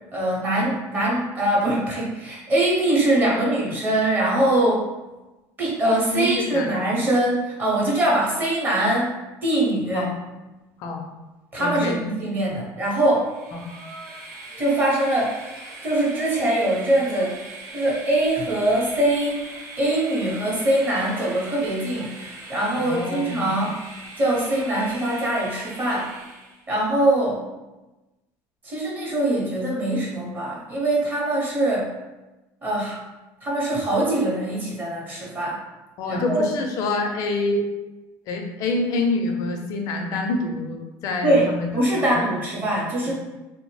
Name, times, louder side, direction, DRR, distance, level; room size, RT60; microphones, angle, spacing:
voice 1, 0.1-4.9 5.6-9.2 9.4-10.1 11.5-13.3 14.6-15.4 15.8-17.4 17.7-19.4 19.8-23.8 24.2-26.1 26.7-27.4 28.6-31.9 32.6-33.0 33.4-35.6 36.1-36.4 41.2-43.1, right 1 dB, 25° right, -4 dB, 0.8 m, -22 dB
voice 2, 6.1-6.9 9.9-10.1 10.8-11.0 11.6-12.0 13.5-13.6 22.8-23.5 36.0-37.6 38.3-41.7 42.0-42.3 43.0-43.1, left 2 dB, 55° left, 3 dB, 0.4 m, -26 dB
Train, 13.2-26.7, right 2 dB, 50° right, 0.5 m, -40 dB
2.8 x 2.0 x 3.1 m, 1.1 s
cardioid pair, 155°, 7 cm